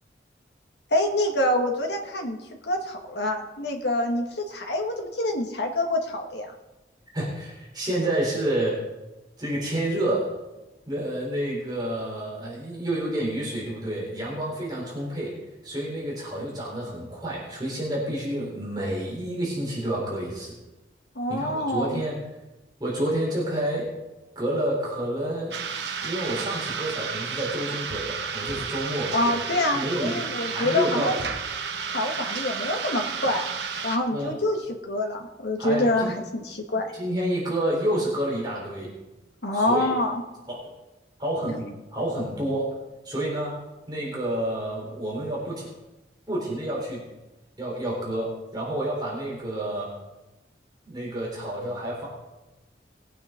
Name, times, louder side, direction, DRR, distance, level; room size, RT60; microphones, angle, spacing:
voice 1, 0.9-2.4 2.6-6.5 21.2-22.0 29.1-31.1 31.8-33.4 33.8-36.9 39.4-40.2 41.5-41.6, left 1 dB, 75° left, 3 dB, 2.0 m, -26 dB
voice 2, 7.1-8.8 9.4-10.3 10.9-15.3 15.6-20.6 21.3-22.2 22.8-23.9 24.4-25.6 26.0-30.2 30.5-31.1 34.1-34.3 35.6-36.1 36.9-38.9 39.5-39.9 40.5-40.6 41.2-41.7 41.9-42.7 43.0-43.5 43.9-45.7 46.3-47.0 47.6-49.9 50.9-52.1, right 1 dB, 25° right, -5 dB, 4.1 m, -29 dB
sound 1, 25.5-34.0, right 6 dB, 80° right, 1.2 m, -32 dB
20.0 x 8.9 x 3.9 m, 1.1 s
head